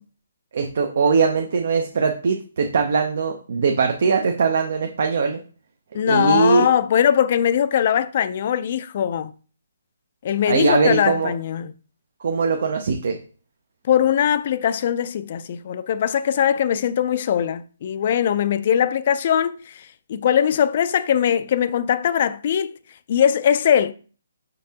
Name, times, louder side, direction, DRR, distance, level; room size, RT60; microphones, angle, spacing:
voice 1, 0.5-5.4 6.1-6.7 10.5-11.3 12.2-13.2, right 5 dB, 60° right, 0.5 m, -21 dB
voice 2, 5.9-9.3 10.2-11.7 13.8-22.7 23.1-23.9, left 9 dB, 45° left, 0.3 m, -21 dB
5.2 x 3.5 x 2.8 m
hypercardioid pair, 160°, 0 cm